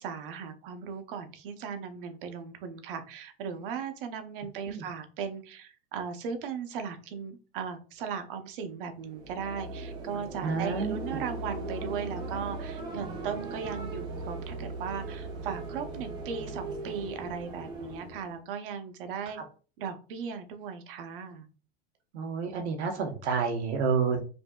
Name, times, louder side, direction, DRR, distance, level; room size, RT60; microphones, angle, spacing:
voice 1, 0.0-19.4 19.8-21.5, right 6 dB, 55° right, 8 dB, 0.8 m, -37 dB
sound 1, 9.0-18.4, right 3 dB, 15° right, 0.3 m, -38 dB
voice 2, 10.4-11.0 22.1-24.2, right 5 dB, 85° right, 3 dB, 1.1 m, -29 dB
5.2 x 2.6 x 2.3 m, 0.36 s
supercardioid pair, 165°, 32 cm